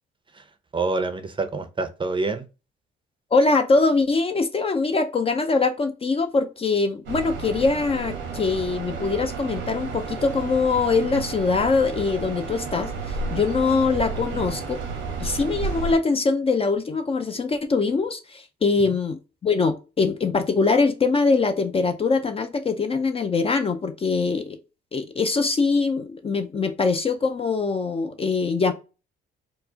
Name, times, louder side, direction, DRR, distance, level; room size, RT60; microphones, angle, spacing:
voice 1, 0.7-2.5 14.3-14.5 18.9-19.0, right 3 dB, 25° right, 0.5 m, -27 dB
voice 2, 3.3-14.8 15.2-24.6 24.9-28.7, left 4 dB, 30° left, 0.4 m, -23 dB
sound 1, 7.1-16.0, right 4 dB, 80° right, 1.0 m, -32 dB
4.5 x 2.0 x 2.7 m
cardioid pair, 90°, 20 cm